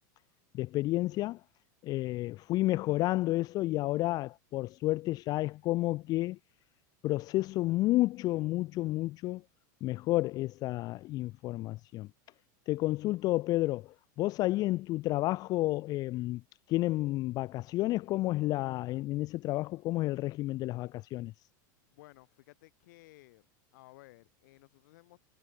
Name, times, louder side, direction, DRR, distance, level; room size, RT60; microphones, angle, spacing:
voice 1, 0.5-1.4 1.8-6.4 7.0-9.4 9.8-12.1 12.7-16.4 16.7-21.3, left 18 dB, 40° left, 0.4 m, -31 dB
voice 2, 21.9-23.5 23.7-25.2, left 20 dB, 70° left, 3.0 m, -57 dB
supercardioid pair, 130°, 10 cm